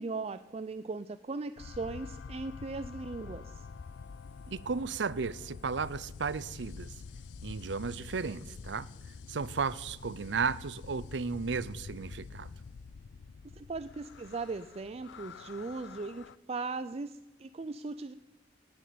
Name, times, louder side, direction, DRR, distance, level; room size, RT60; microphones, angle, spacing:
voice 1, 0.0-3.7 13.5-18.1, right 3 dB, 35° right, 0.4 m, -38 dB
sound 1, 1.6-16.4, left 5 dB, 80° left, 0.4 m, -47 dB
voice 2, 4.5-6.9 7.4-8.9 9.3-12.5, right 5 dB, 75° right, 0.6 m, -34 dB
18.5 x 7.4 x 8.6 m
head